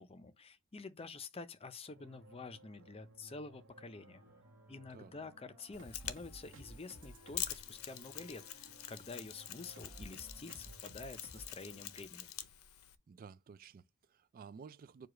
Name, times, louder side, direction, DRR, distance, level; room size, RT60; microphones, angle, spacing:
voice 1, 0.0-4.2 4.7-12.3, left 3 dB, 25° left, 0.5 m, -49 dB
sound 1, 1.9-12.0, equal, 65° right, 1.1 m, -56 dB
Wind instrument woodwind instrument, 3.8-12.1, right 1 dB, 10° right, 0.7 m, -68 dB
Mechanisms, 5.7-13.0, left 12 dB, 80° left, 0.6 m, -46 dB
voice 2, 13.1-15.1, right 6 dB, 40° right, 0.3 m, -53 dB
4.8 x 2.3 x 4.9 m
head